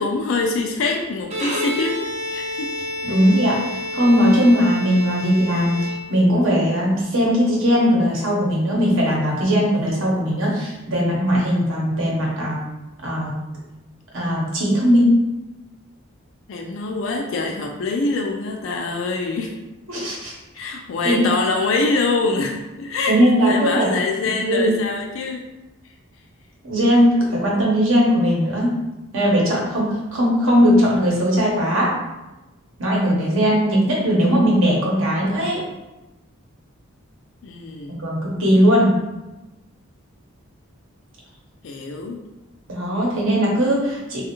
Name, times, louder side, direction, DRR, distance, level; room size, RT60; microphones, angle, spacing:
voice 1, 0.0-2.0 2.3-2.7 3.1-3.2 16.5-19.5 20.2-23.2 23.4-25.5 37.4-38.0 41.6-42.2, left 3 dB, 65° left, 1 dB, 0.3 m, -24 dB
Bowed string instrument, 1.2-6.5, left 1 dB, 30° right, 0.4 m, -29 dB
voice 2, 3.0-5.7 6.1-12.6 13.0-13.3 14.1-15.1 19.9-20.3 21.0-21.2 23.1-23.9 24.5-24.7 26.6-28.7 29.1-31.9 32.8-35.6 38.0-38.9 42.7-44.2, equal, 65° right, -3 dB, 0.9 m, -19 dB
3.2 x 2.3 x 2.9 m, 1.0 s
head